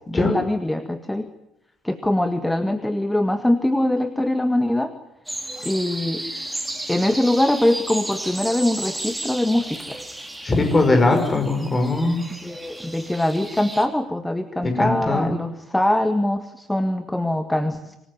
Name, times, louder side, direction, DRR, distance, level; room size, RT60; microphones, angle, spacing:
voice 1, 0.1-1.3 1.8-4.9 5.6-6.2 6.9-10.0 12.4-18.0, left 1 dB, 5° left, 9 dB, 1.8 m, -22 dB
sound 1, 5.3-13.9, right 1 dB, 10° right, 4.5 m, -33 dB
voice 2, 10.4-12.2 14.6-15.3, left 2 dB, 25° left, 5 dB, 5.9 m, -20 dB
26.0 x 20.0 x 9.9 m, 0.86 s
figure-of-eight pair, 50°, 0 cm